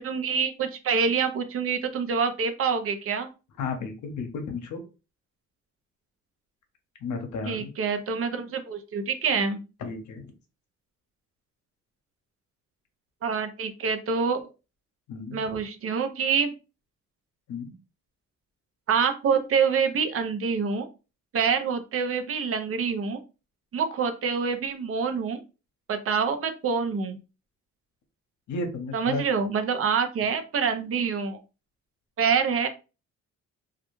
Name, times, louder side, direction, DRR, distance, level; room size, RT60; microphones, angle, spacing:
voice 1, 0.0-3.3 7.4-9.6 13.2-14.4 15.3-16.5 18.9-20.9 21.3-23.2 23.7-25.4 25.9-27.2 28.9-31.4 32.2-32.7, right 6 dB, 50° right, 8 dB, 0.6 m, -26 dB
voice 2, 3.6-4.8 7.0-7.7 9.8-10.3 15.1-15.6 17.5-17.8 28.5-29.2, left 4 dB, 70° left, 5 dB, 0.8 m, -33 dB
2.3 x 2.1 x 3.0 m, 0.31 s
cardioid pair, 90°, 30 cm